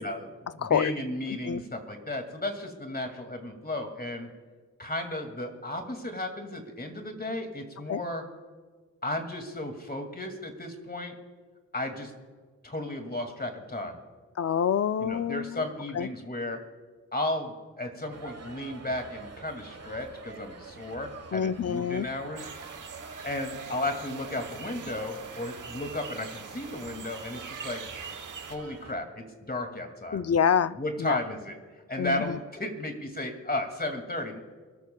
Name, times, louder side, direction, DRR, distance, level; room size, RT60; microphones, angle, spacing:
voice 1, 0.0-4.3 4.8-8.2 9.0-11.1 11.7-12.1 12.6-14.0 15.0-16.6 17.1-22.4 23.2-27.8 28.5-30.2 30.8-31.6 31.9-34.4, left 1 dB, 30° left, 5 dB, 2.3 m, -34 dB
voice 2, 0.6-0.9 1.4-1.6 7.9-8.0 14.4-15.6 15.9-16.1 21.3-22.1 30.1-31.2 32.0-32.4, left 7 dB, 55° left, 15 dB, 0.5 m, -27 dB
sound 1, 18.1-28.9, right 4 dB, 55° right, 1.3 m, -46 dB
sound 2, 22.4-28.6, right 6 dB, 85° right, 1.1 m, -43 dB
28.0 x 13.0 x 2.3 m, 1.5 s
wide cardioid pair, 70°, 31 cm